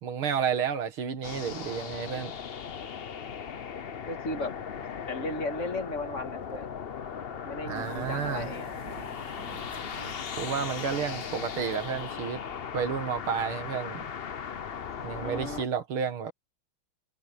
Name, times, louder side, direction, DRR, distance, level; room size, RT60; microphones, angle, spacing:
voice 1, 0.0-2.3 7.7-8.5 10.4-12.4 12.7-14.0 15.0-16.3, right 7 dB, 90° right, 2.7 m, -31 dB
sound 1, 1.2-15.7, left 7 dB, 65° left, 0.5 m, -38 dB
sound 2, 2.5-5.9 6.1-6.9, right 1 dB, 30° right, 8.2 m, -62 dB
voice 2, 4.1-4.6 5.1-6.7 7.4-8.7 15.1-15.6, left 1 dB, 35° left, 2.0 m, -35 dB
sound 3, 7.7-12.2, right 4 dB, 65° right, 3.5 m, -47 dB
omnidirectional pair, 2.3 m